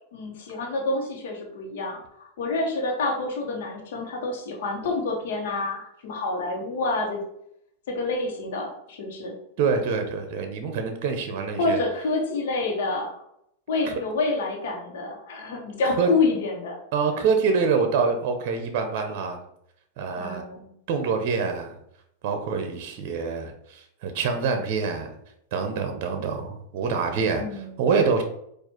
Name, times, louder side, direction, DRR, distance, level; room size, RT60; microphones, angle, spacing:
voice 1, 0.1-7.2 7.9-9.4 11.6-13.2 13.7-16.8 20.2-20.7 27.4-27.9, left 3 dB, 75° left, 0 dB, 1.1 m, -28 dB
voice 2, 9.6-11.8 16.0-16.1 16.9-19.4 20.0-20.4 20.9-21.8 22.2-25.1 25.5-27.4 27.8-28.2, right 5 dB, 55° right, 6 dB, 0.7 m, -25 dB
4.5 x 2.5 x 4.4 m, 0.75 s
hypercardioid pair, 125°, 0 cm